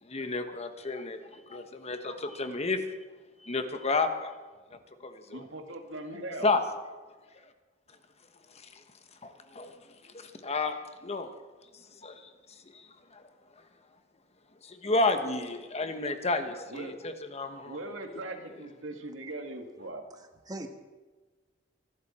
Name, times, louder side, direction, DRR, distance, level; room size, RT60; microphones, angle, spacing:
voice 1, 0.0-2.8 3.4-4.3 4.7-5.4 6.4-6.6 7.4-7.5 8.5-8.8 9.2-9.7 10.0-11.4 11.7-12.3 12.7-13.2 14.6-17.8, left 3 dB, 35° left, 7 dB, 1.3 m, -32 dB
voice 2, 5.3-6.5 16.7-17.0 17.6-20.1, right 2 dB, 90° right, 4 dB, 2.0 m, -40 dB
voice 3, 20.1-20.7, right 1 dB, 20° right, 6 dB, 1.5 m, -41 dB
25.0 x 12.5 x 4.4 m, 1.3 s
head